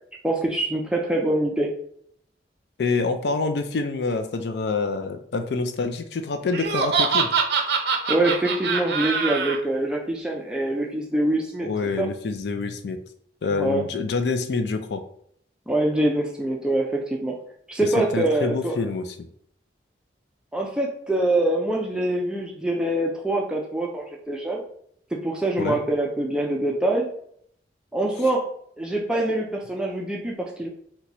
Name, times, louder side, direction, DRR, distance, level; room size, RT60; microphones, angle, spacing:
voice 1, 0.2-1.8 8.1-11.7 12.0-12.1 13.5-13.9 15.7-17.4 17.7-18.8 20.5-24.6 25.1-27.1 27.9-28.5 28.8-30.7, right 1 dB, 5° right, -1 dB, 0.3 m, -24 dB
voice 2, 2.8-7.3 11.6-13.0 13.4-15.0 17.8-19.1 25.6-25.8, left 4 dB, 65° left, 7 dB, 0.4 m, -26 dB
Laughter, 6.5-9.6, right 5 dB, 65° right, 0.5 m, -24 dB
2.9 x 2.2 x 4.0 m, 0.66 s
head